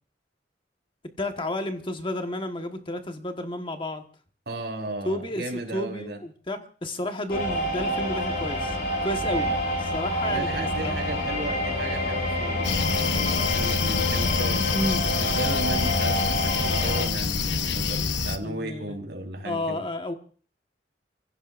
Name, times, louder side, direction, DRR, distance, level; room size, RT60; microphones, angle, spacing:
voice 1, 1.2-4.0 5.0-8.8 9.0-9.5 9.9-10.9 14.7-15.1 18.4-19.0 19.4-20.1, left 1 dB, 30° left, 6 dB, 1.4 m, -31 dB
voice 2, 4.5-6.2 9.3-9.6 10.3-14.7 15.1-19.8, right 1 dB, 70° right, 2 dB, 4.1 m, -35 dB
sound 1, 7.3-17.1, left 1 dB, 65° left, 7.5 m, -27 dB
sound 2, 12.6-18.4, left 5 dB, 80° left, 1.0 m, -27 dB
29.5 x 16.0 x 2.6 m, 0.42 s
head